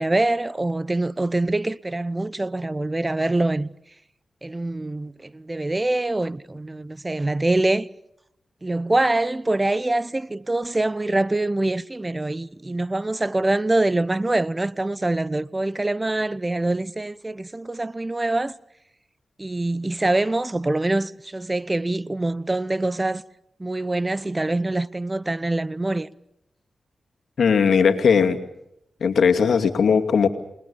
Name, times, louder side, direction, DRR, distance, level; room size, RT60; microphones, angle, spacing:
voice 1, 0.0-3.7 4.4-7.9 8.6-18.5 19.4-23.2 23.6-26.1, right 2 dB, 30° right, 0.9 m, -24 dB
voice 2, 27.4-28.4 29.0-30.3, left 6 dB, 75° left, 2.4 m, -18 dB
28.5 x 21.0 x 7.1 m
supercardioid pair, 40°, 0 cm